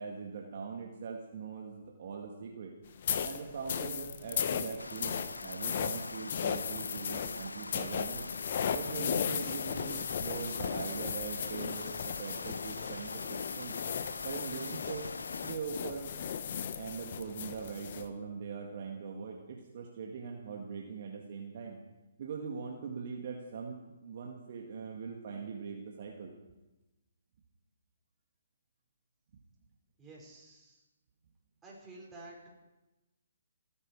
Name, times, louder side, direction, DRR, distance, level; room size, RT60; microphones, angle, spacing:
voice 1, 0.0-2.7 3.2-8.3 8.7-13.8 14.2-15.1 15.4-16.1 16.8-21.8 22.2-26.3, right 5 dB, 50° right, 1 dB, 2.0 m, -41 dB
sound 1, 3.0-18.1, left 8 dB, 50° left, 1.1 m, -36 dB
sound 2, 4.8-15.5, left 3 dB, 85° left, 0.5 m, -44 dB
voice 2, 30.0-30.8 31.6-32.5, right 2 dB, 10° right, -4 dB, 5.6 m, -51 dB
29.0 x 9.8 x 4.9 m, 1.0 s
figure-of-eight pair, 135°, 0 cm